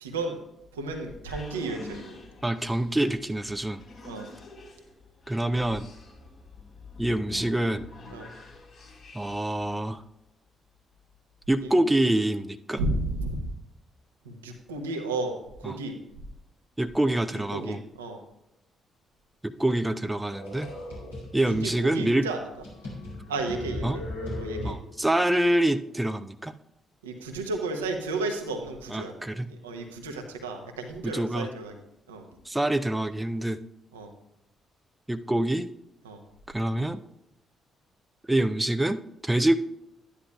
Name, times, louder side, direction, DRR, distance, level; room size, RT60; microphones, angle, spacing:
voice 1, 0.0-0.4 0.8-2.0 4.0-4.3 8.1-8.3 12.8-13.4 14.2-15.9 17.0-18.2 21.5-22.4 23.3-24.0 24.4-24.8 27.0-29.1 29.5-31.7 32.1-32.3 33.9-34.1 36.0-36.2, right 2 dB, 80° right, 4 dB, 0.9 m, -33 dB
sound 1, 0.6-9.7, left 3 dB, 55° left, 4.1 m, -46 dB
voice 2, 2.4-3.8 5.3-5.9 7.0-7.9 9.1-10.0 11.5-12.8 15.6-15.8 16.8-17.8 19.4-20.7 21.3-22.3 23.8-24.0 24.6-26.5 28.9-29.5 31.0-31.5 32.5-33.6 35.1-35.7 36.5-37.0 38.3-39.6, right 1 dB, 10° right, 10 dB, 0.4 m, -26 dB
sound 2, 20.3-21.7 22.2-22.3 22.6-25.1, left 1 dB, 80° left, 3.4 m, -37 dB
12.5 x 9.9 x 2.3 m, 0.85 s
figure-of-eight pair, 40°, 0 cm